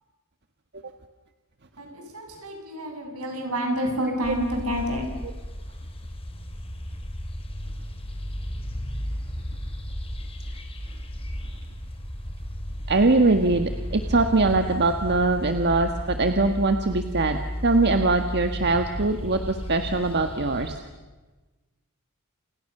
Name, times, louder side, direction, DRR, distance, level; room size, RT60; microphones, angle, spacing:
voice 1, 1.8-5.1, equal, 75° right, 3 dB, 7.8 m, -29 dB
sound 1, 4.2-20.7, equal, 25° left, 3.5 m, -34 dB
voice 2, 12.9-20.8, right 3 dB, 50° right, 6 dB, 1.6 m, -22 dB
29.5 x 29.0 x 6.8 m, 1.2 s
head